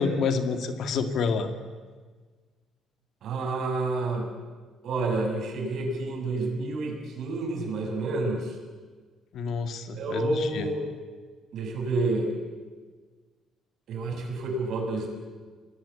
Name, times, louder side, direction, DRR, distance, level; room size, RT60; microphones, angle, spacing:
voice 1, 0.0-1.5 9.3-10.7, left 5 dB, 60° left, 7 dB, 2.3 m, -28 dB
voice 2, 3.2-4.3 4.8-8.6 9.9-10.8 11.5-12.4 13.9-15.1, right 2 dB, 60° right, 3 dB, 6.7 m, -29 dB
28.5 x 20.5 x 8.5 m, 1.5 s
cardioid pair, 125°, 0 cm